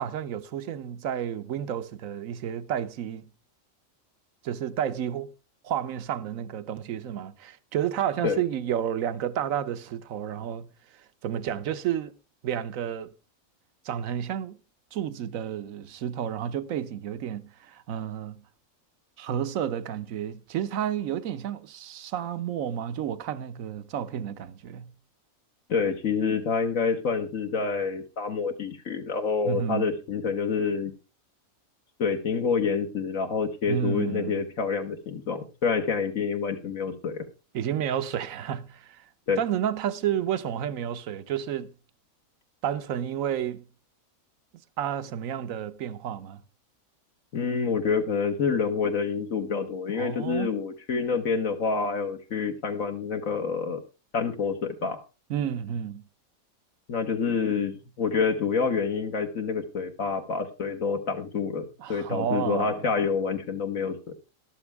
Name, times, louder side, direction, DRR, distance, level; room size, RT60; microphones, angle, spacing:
voice 1, 0.0-3.3 4.4-5.3 5.6-12.2 12.4-13.1 13.8-14.6 14.9-18.4 19.2-24.9 29.4-30.0 33.7-34.5 37.5-39.1 39.4-41.7 42.6-43.7 44.8-46.4 50.0-50.5 55.3-56.0 61.8-62.9, right 9 dB, 75° right, 1.2 m, -31 dB
voice 2, 25.7-30.9 32.0-37.2 39.3-39.4 47.3-53.8 54.1-55.0 56.9-64.1, left 5 dB, 70° left, 1.6 m, -27 dB
13.0 x 12.0 x 3.5 m
omnidirectional pair, 1.4 m